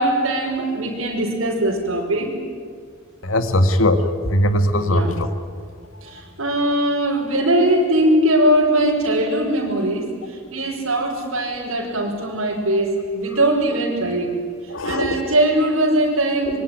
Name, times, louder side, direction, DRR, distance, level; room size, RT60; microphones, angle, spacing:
voice 1, 0.0-2.3 4.8-5.1 6.0-10.1 10.5-14.4 14.8-16.6, right 1 dB, 80° right, -2 dB, 5.6 m, -20 dB
voice 2, 3.2-4.0 4.3-5.3 14.7-15.1, left 1 dB, 80° left, 8 dB, 2.0 m, -19 dB
25.5 x 23.0 x 9.3 m, 2.1 s
head